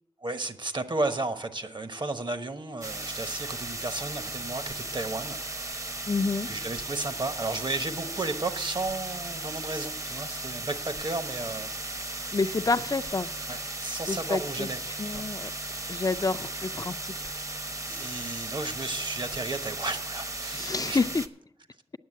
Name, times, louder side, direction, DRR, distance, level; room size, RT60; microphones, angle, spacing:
voice 1, 0.2-5.4 6.5-11.7 12.0-12.1 13.5-14.8 15.0-15.2 17.9-21.0, right 2 dB, 45° right, 9 dB, 1.1 m, -33 dB
sound 1, 2.8-21.3, right 2 dB, 30° right, 0.8 m, -36 dB
voice 2, 6.1-6.5 12.3-13.3 14.1-14.7 15.0-15.5 15.9-17.3 20.6-21.2, left 3 dB, 35° left, 12 dB, 0.4 m, -28 dB
9.4 x 7.2 x 8.3 m, 0.75 s
cardioid pair, 55°, 10 cm